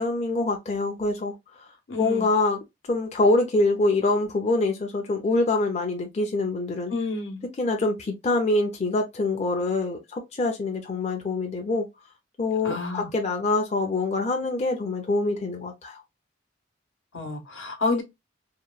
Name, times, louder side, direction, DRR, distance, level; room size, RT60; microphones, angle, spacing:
voice 1, 0.0-1.7 2.0-2.6 2.9-6.9 7.6-11.9 12.4-16.0, left 2 dB, 35° left, 0.5 m, -25 dB
voice 2, 1.9-2.3 6.9-7.4 12.6-13.1 17.1-18.0, left 3 dB, 75° left, 0.9 m, -29 dB
2.9 x 2.1 x 2.3 m
head